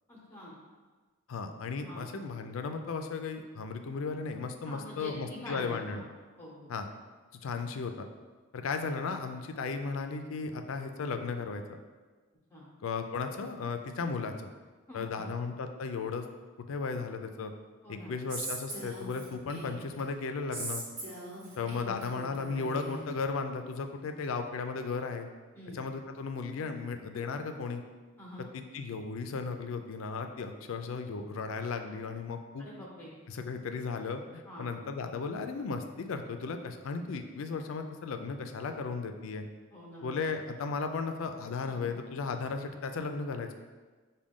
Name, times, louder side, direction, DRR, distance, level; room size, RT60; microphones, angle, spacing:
voice 1, 0.1-0.5 1.9-2.0 4.6-6.0 6.4-6.7 12.5-12.7 14.9-15.2 17.8-18.1 25.5-25.8 28.2-28.4 32.6-33.1 34.5-34.7 39.7-40.1 41.8-41.9, equal, 10° left, -6 dB, 0.8 m, -45 dB
voice 2, 1.3-6.0 6.7-6.9 7.4-8.1 8.5-11.6 12.8-14.5 14.9-16.3 16.7-17.5 17.9-20.8 21.6-25.3 25.7-27.8 28.5-32.7 33.3-39.4 40.0-43.5, left 4 dB, 80° left, 7 dB, 0.4 m, -35 dB
Female speech woman speaking, 18.3-20.0 20.5-23.0, right 2 dB, 60° right, 1.1 m, -40 dB
6.1 x 2.2 x 3.6 m, 1.4 s
head